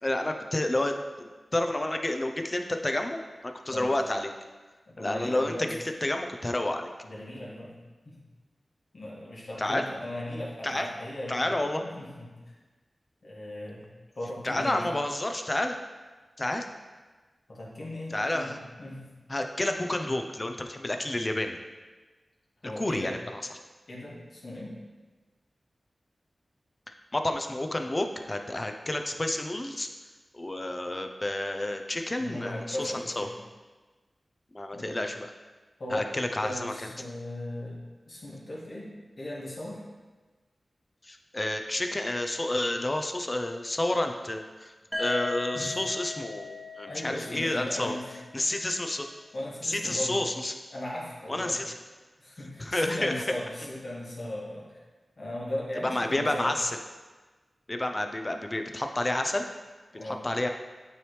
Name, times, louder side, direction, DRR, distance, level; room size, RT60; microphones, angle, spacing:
voice 1, 0.0-4.3 5.0-5.5 6.0-6.9 9.6-9.8 10.6-10.9 11.3-11.8 14.4-15.8 16.4-16.7 18.1-18.6 19.3-21.6 22.8-23.1 27.1-29.9 30.3-33.3 34.5-35.3 35.9-36.9 41.0-44.7 45.0-48.0 48.3-49.1 49.6-50.5 51.3-51.7 52.6-53.1 55.8-56.7 57.7-59.5 60.0-60.5, left 1 dB, 30° left, 5 dB, 0.6 m, -30 dB
voice 2, 4.9-5.7 7.0-7.7 8.1-8.2 8.9-11.5 11.8-12.6 13.2-13.9 14.2-14.8 17.5-19.1 22.6-23.2 23.9-24.8 32.2-33.3 34.7-35.0 35.8-37.8 38.1-39.8 45.5-45.8 46.8-48.1 49.3-50.2 50.7-51.6 52.2-54.8 55.2-56.6 59.9-60.2, left 1 dB, 60° left, -5 dB, 1.8 m, -37 dB
sound 1, 44.9-48.8, left 3 dB, 10° right, 1.2 m, -38 dB
9.1 x 3.4 x 3.1 m, 1.3 s
cardioid pair, 45°, 0 cm